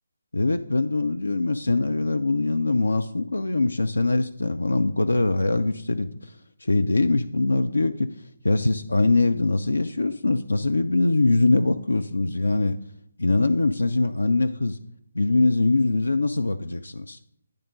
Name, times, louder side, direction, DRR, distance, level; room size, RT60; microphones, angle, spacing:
voice 1, 0.3-6.3 6.6-8.1 8.4-12.8 13.2-14.8 15.1-17.2, left 2 dB, 75° left, 9 dB, 0.4 m, -22 dB
10.0 x 3.6 x 6.3 m, 0.73 s
figure-of-eight pair, 145°, 0 cm